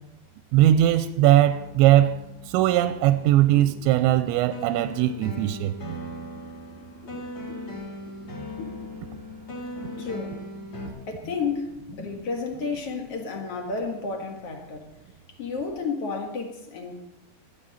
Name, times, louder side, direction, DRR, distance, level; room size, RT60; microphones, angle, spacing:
voice 1, 0.5-2.2 2.5-6.0, right 13 dB, 90° right, 3.0 m, -20 dB
sound 1, 1.5-10.9, left 1 dB, 35° left, 4.6 m, -39 dB
sound 2, 1.6-13.0, left 2 dB, 70° left, 6.8 m, -48 dB
voice 2, 10.0-10.4 11.1-11.7 12.0-14.9 15.3-16.9, left 4 dB, 55° left, 1.8 m, -31 dB
20.5 x 13.5 x 4.3 m
omnidirectional pair, 5.1 m